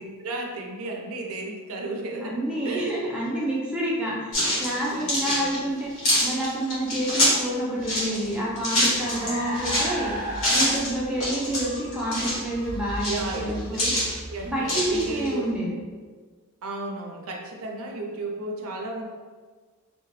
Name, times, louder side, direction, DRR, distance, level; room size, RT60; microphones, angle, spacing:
voice 1, 0.0-3.0 4.9-5.5 9.1-9.6 13.1-13.8 14.3-15.5 16.6-19.1, right 2 dB, 65° right, 1 dB, 0.5 m, -34 dB
voice 2, 2.2-5.9 6.2-10.1 10.5-13.9 14.5-15.8, right 1 dB, 5° right, -6 dB, 0.5 m, -28 dB
sound 1, 4.3-7.4 7.8-9.9 10.3-10.9 11.2-12.4 12.9-14.1 14.6-15.3, left 1 dB, 60° left, 1.2 m, -25 dB
Car, 7.8-15.6, equal, 80° left, 0.9 m, -36 dB
2.7 x 2.1 x 3.1 m, 1.5 s
head